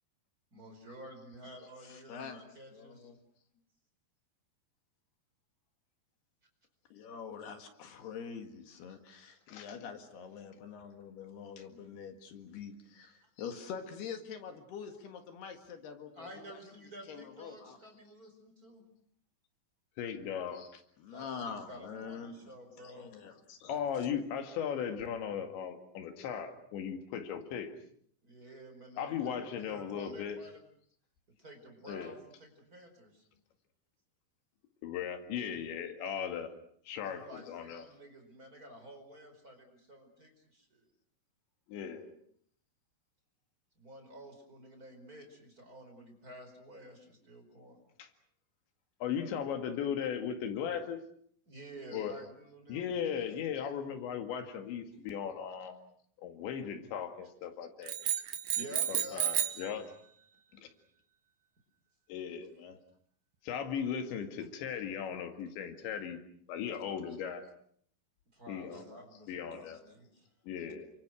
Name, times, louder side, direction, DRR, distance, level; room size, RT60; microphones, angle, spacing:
voice 1, 0.5-3.1 16.1-18.8 21.1-23.1 28.2-30.6 31.4-33.2 37.0-40.8 43.8-47.8 51.5-52.9 57.8-57.9 58.6-59.3 68.3-70.3, equal, 20° right, 4 dB, 4.9 m, -51 dB
voice 2, 1.8-3.2 6.9-17.8 20.7-24.1, left 6 dB, 70° left, 6 dB, 3.8 m, -46 dB
voice 3, 9.5-9.9 13.4-13.5 20.0-20.8 23.7-27.7 29.0-30.4 31.9-32.2 34.8-36.5 36.9-37.9 41.7-42.1 48.0-48.1 49.0-51.0 51.9-52.2 52.7-55.8 56.2-58.0 58.9-59.9 60.5-60.7 62.1-62.8 63.4-66.2 66.5-67.5 68.5-68.9 69.3-69.8 70.5-70.9, left 8 dB, 85° left, 7 dB, 4.4 m, -37 dB
sound 1, 57.9-59.7, right 10 dB, 60° right, 2.8 m, -32 dB
29.5 x 26.0 x 6.3 m, 0.64 s
omnidirectional pair, 5.0 m